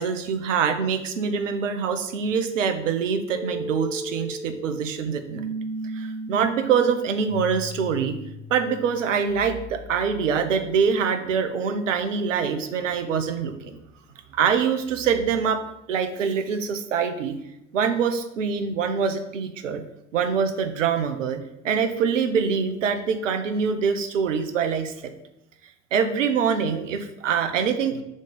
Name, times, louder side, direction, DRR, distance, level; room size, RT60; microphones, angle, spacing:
voice 1, 0.0-5.4 5.9-8.2 8.5-13.8 14.3-17.3 17.7-19.8 20.1-24.9 25.9-28.0, right 6 dB, 75° right, 8 dB, 0.8 m, -24 dB
sound 1, 3.3-11.2, right 1 dB, 25° left, 1.4 m, -36 dB
5.2 x 3.7 x 5.4 m, 0.85 s
figure-of-eight pair, 70°, 38 cm